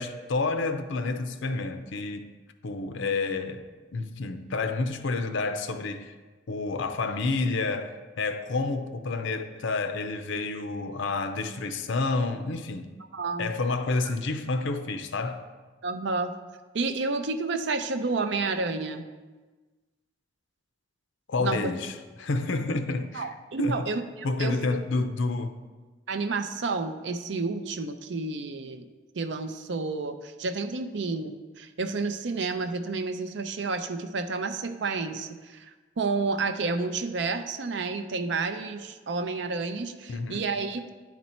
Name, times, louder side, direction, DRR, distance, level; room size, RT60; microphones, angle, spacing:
voice 1, 0.0-2.3 2.6-3.6 3.9-6.1 6.5-12.9 13.4-15.5 21.3-23.9 24.2-25.5 40.1-40.4, left 3 dB, 80° left, 0.6 m, -29 dB
voice 2, 13.1-13.5 14.0-14.1 15.8-16.3 16.7-19.1 21.4-21.7 23.1-24.8 26.1-28.9 29.1-40.9, right 3 dB, 65° right, 0.5 m, -30 dB
9.5 x 4.2 x 4.3 m
head